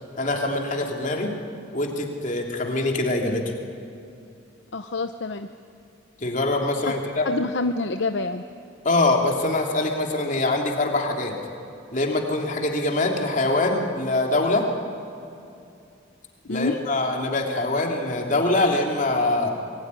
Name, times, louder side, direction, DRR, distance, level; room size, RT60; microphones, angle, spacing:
voice 1, 0.2-1.4 1.7-3.4 6.2-7.3 8.8-11.4 11.9-14.7 16.5-19.5, left 2 dB, 40° left, 1 dB, 3.1 m, -24 dB
voice 2, 4.7-5.5 7.2-8.4 16.5-16.7, left 3 dB, 60° left, 8 dB, 0.8 m, -27 dB
26.5 x 22.0 x 9.8 m, 2.6 s
head